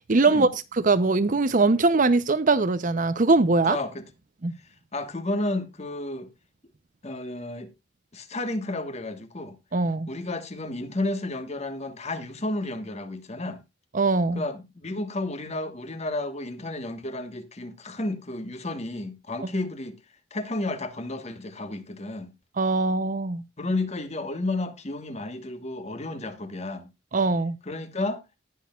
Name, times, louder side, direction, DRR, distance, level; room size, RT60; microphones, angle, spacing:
voice 1, 0.1-3.8 4.4-4.5 9.7-10.1 13.9-14.4 19.4-19.5 22.6-23.4 27.1-27.5, right 3 dB, 40° right, 0.6 m, -22 dB
voice 2, 3.7-4.0 4.9-6.3 7.0-7.7 8.1-9.6 10.1-13.6 14.3-20.0 20.3-22.3 23.6-26.9 27.7-28.2, left 2 dB, 30° left, 1.3 m, -32 dB
19.0 x 6.4 x 2.3 m
head